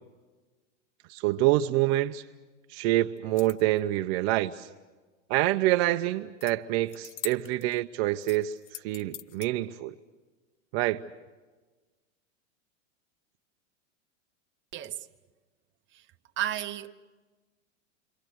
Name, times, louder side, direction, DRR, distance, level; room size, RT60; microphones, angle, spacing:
voice 1, 1.1-2.2 2.7-4.7 5.3-8.6 8.8-9.9 10.7-11.0, right 16 dB, 55° right, 0.8 m, -26 dB
sound 1, 3.2-3.8 6.4-6.5 6.9-7.8 8.2-9.5, left 14 dB, 65° left, 0.7 m, -42 dB
voice 2, 14.7-15.1 15.9-16.0 16.4-16.9, right 11 dB, 30° right, 1.0 m, -33 dB
28.0 x 24.5 x 6.4 m
hypercardioid pair, 110°, 38 cm